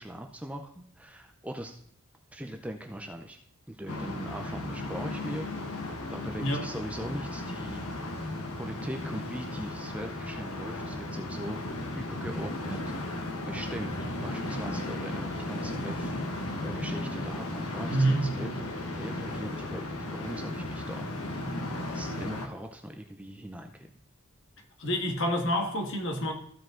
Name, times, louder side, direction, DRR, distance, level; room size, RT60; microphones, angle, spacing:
voice 1, 0.0-1.8 2.3-3.4 3.7-5.8 6.1-8.2 8.6-11.6 11.9-13.2 13.5-13.9 14.2-21.1 21.8-23.9, right 1 dB, 5° right, 0.5 m, -40 dB
sound 1, 3.9-22.5, left 1 dB, 75° left, 1.4 m, -35 dB
voice 2, 17.9-18.6 24.8-26.3, right 1 dB, 55° left, 1.5 m, -28 dB
14.5 x 5.1 x 3.8 m
head